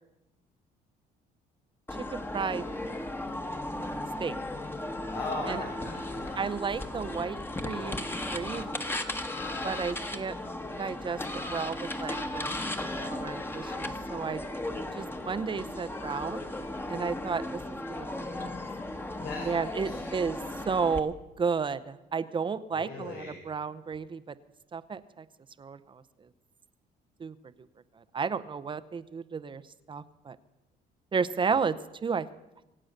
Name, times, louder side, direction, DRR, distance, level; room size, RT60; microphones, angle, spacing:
sound 1, 1.9-21.0, left 1 dB, 15° left, 1.4 m, -36 dB
voice 1, 2.1-2.6 4.2-4.3 5.5-5.6 6.4-7.4 7.6-8.9 9.6-10.3 10.8-11.2 11.5-12.5 13.0-14.4 14.9-16.4 16.9-17.6 18.0-18.5 19.5-20.4 20.7-24.2 24.7-25.0 25.6-25.8 27.2-27.3 28.1-29.6 29.9-30.4 31.1-31.8 32.0-32.3, right 5 dB, 30° right, 13 dB, 0.7 m, -32 dB
voice 2, 5.1-6.4 19.2-20.3 22.7-23.4, left 2 dB, 85° left, -2 dB, 4.3 m, -38 dB
24.5 x 8.7 x 6.6 m, 0.95 s
cardioid pair, 110°, 17 cm